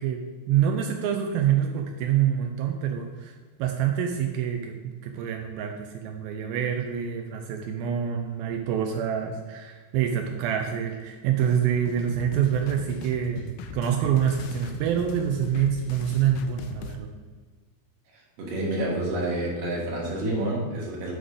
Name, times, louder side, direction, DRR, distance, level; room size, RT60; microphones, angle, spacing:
voice 1, 0.0-17.1, right 9 dB, 90° right, 3 dB, 2.1 m, -26 dB
sound 1, 11.4-17.0, left 7 dB, 80° left, 2.5 m, -40 dB
voice 2, 18.4-21.1, right 1 dB, 60° right, -3 dB, 3.1 m, -28 dB
9.5 x 3.8 x 4.9 m, 1.5 s
omnidirectional pair, 4.8 m